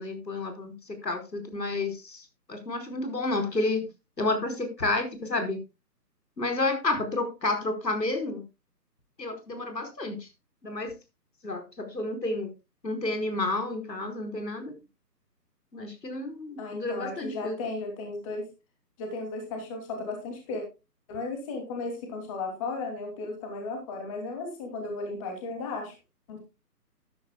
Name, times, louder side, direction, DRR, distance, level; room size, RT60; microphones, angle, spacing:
voice 1, 0.0-3.8 4.2-5.6 6.4-8.4 9.2-10.3 10.6-10.9 11.4-12.5 12.8-14.8 15.7-17.6, left 2 dB, 80° left, 6 dB, 4.9 m, -30 dB
voice 2, 16.6-18.4 19.0-20.6 21.1-25.9 26.3-26.4, left 3 dB, 20° left, 3 dB, 2.9 m, -35 dB
13.5 x 12.5 x 2.3 m, 0.26 s
figure-of-eight pair, 155°, 49 cm